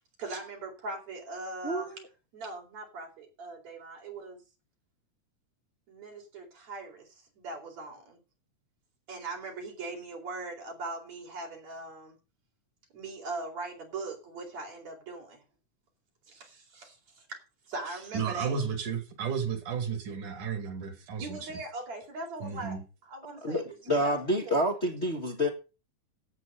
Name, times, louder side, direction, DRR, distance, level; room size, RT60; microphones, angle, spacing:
voice 1, 0.2-2.0 2.3-4.4 5.9-7.1 7.4-8.2 9.1-12.2 12.9-15.4 16.3-17.4 17.7-18.6 21.1-24.8, right 3 dB, 60° right, 5.4 m, -40 dB
voice 2, 1.6-2.0 23.4-25.5, equal, 30° left, 1.4 m, -28 dB
voice 3, 18.1-21.4 22.4-22.8, right 6 dB, 85° right, 3.8 m, -33 dB
12.5 x 8.7 x 5.5 m
omnidirectional pair, 3.5 m